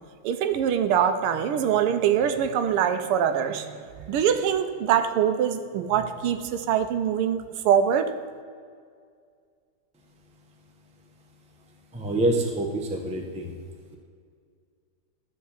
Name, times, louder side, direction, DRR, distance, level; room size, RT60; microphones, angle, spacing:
voice 1, 0.2-8.1, right 8 dB, 90° right, 9 dB, 1.7 m, -24 dB
voice 2, 11.9-13.6, right 1 dB, 10° right, 1 dB, 0.4 m, -26 dB
13.0 x 4.3 x 7.2 m, 2.1 s
omnidirectional pair, 2.4 m